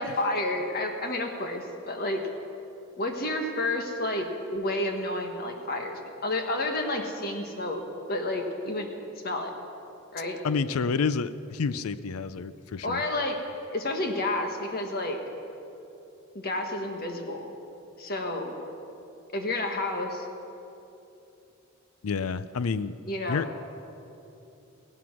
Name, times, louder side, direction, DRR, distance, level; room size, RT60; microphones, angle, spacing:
voice 1, 0.0-2.2 3.0-7.8 8.1-8.9 9.2-9.5 10.1-10.4 12.8-13.4 13.7-15.2 16.3-17.5 18.0-18.5 19.3-20.3 23.1-23.4, left 1 dB, 45° left, 3 dB, 1.5 m, -30 dB
voice 2, 10.4-13.0 22.0-22.9 23.3-23.5, left 5 dB, 90° left, 15 dB, 0.5 m, -29 dB
16.5 x 11.0 x 6.0 m, 2.9 s
head